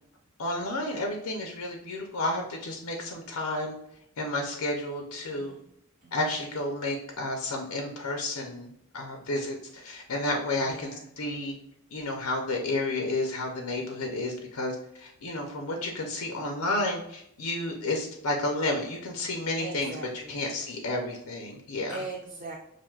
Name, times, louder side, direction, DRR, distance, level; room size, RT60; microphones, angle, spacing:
voice 1, 0.4-3.7 4.2-5.5 6.1-8.7 8.9-10.9 11.2-11.5 11.9-19.9 20.3-22.0, left 2 dB, 90° left, 2 dB, 0.6 m, -31 dB
voice 2, 10.6-11.1 19.6-20.5 21.9-22.6, right 3 dB, 35° right, 0 dB, 0.4 m, -40 dB
5.8 x 2.6 x 2.3 m, 0.75 s
head